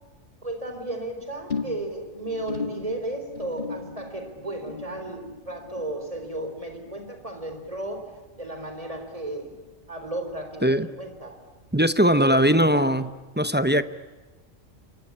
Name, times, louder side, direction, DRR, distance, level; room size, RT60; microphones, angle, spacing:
voice 1, 0.4-8.1 8.4-9.5 9.9-11.4 12.0-12.9, right 1 dB, 25° right, 6 dB, 4.4 m, -34 dB
sound 1, 1.5-8.1 8.3-8.8 9.1-9.2, left 5 dB, 40° left, 1.9 m, -38 dB
voice 2, 11.7-13.1 13.4-13.8, equal, 10° right, 12 dB, 0.7 m, -20 dB
27.5 x 24.0 x 8.6 m, 1.2 s
omnidirectional pair, 1.4 m